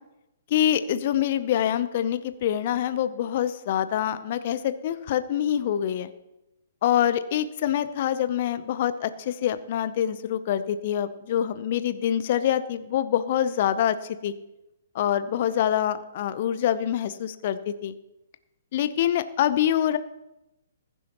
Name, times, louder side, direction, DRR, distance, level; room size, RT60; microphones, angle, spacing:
voice 1, 0.5-6.1 6.8-14.3 14.9-17.9 18.7-20.0, left 10 dB, 45° left, 13 dB, 0.7 m, -25 dB
20.5 x 11.0 x 3.0 m, 0.93 s
figure-of-eight pair, 120°, 0 cm